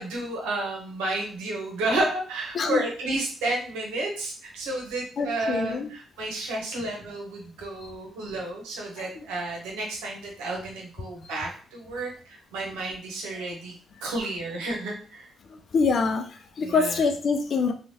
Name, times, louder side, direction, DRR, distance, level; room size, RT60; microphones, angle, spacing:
voice 1, 0.0-13.7 14.0-15.3 16.6-17.0, right 2 dB, 85° right, -1 dB, 0.9 m, -31 dB
voice 2, 5.2-5.9 9.0-9.3 15.5-17.7, left 4 dB, 60° left, 5 dB, 0.5 m, -25 dB
3.0 x 2.4 x 2.8 m, 0.42 s
supercardioid pair, 55°, 0 cm